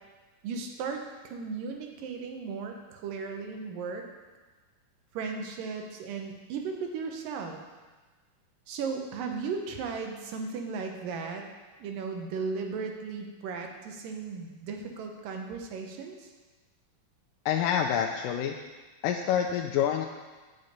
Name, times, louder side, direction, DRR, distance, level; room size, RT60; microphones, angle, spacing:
voice 1, 0.4-4.0 5.1-7.6 8.7-11.5 11.8-16.3, right 5 dB, 80° right, 3 dB, 2.6 m, -36 dB
voice 2, 17.5-18.6 19.0-20.1, left 9 dB, 80° left, 2 dB, 2.2 m, -27 dB
8.9 x 5.4 x 7.9 m, 1.3 s
omnidirectional pair, 4.0 m